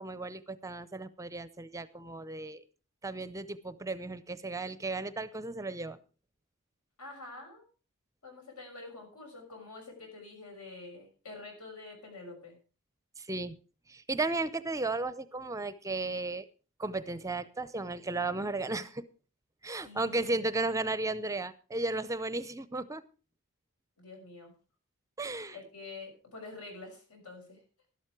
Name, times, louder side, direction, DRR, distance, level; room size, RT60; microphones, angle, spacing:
voice 1, 0.0-2.6 3.0-6.0 13.2-13.5 13.9-16.4 16.8-19.0 19.6-23.0 25.2-25.5, right 2 dB, 15° right, 15 dB, 0.5 m, -34 dB
voice 2, 7.0-7.6 8.2-12.6 19.7-20.4 24.0-24.5 25.5-27.6, left 3 dB, 75° left, 3 dB, 6.4 m, -47 dB
12.5 x 12.0 x 4.7 m, 0.35 s
head